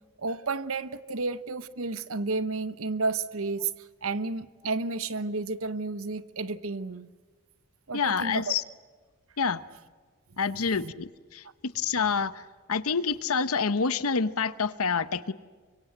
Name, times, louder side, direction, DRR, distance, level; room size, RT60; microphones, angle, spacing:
voice 1, 0.2-3.7 4.0-7.1 7.9-8.5 10.8-10.9, right 3 dB, 70° right, 15 dB, 1.0 m, -31 dB
voice 2, 7.9-8.6 9.4-9.6 10.4-15.3, left 5 dB, 80° left, 14 dB, 1.0 m, -28 dB
25.0 x 24.0 x 8.1 m, 1.5 s
head